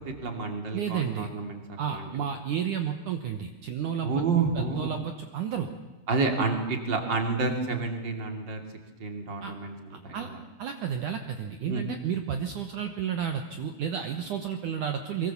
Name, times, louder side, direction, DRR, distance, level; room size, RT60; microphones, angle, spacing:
voice 1, 0.2-1.6 1.9-2.1 4.0-5.0 6.1-8.6 9.0-10.4 11.7-11.8, right 4 dB, 30° right, 4 dB, 2.6 m, -29 dB
voice 2, 0.7-1.3 1.8-4.2 4.6-5.7 9.4-9.5 9.9-10.3 10.6-15.3, right 8 dB, 70° right, 6 dB, 2.0 m, -32 dB
24.0 x 23.5 x 7.2 m, 1.1 s
omnidirectional pair, 5.0 m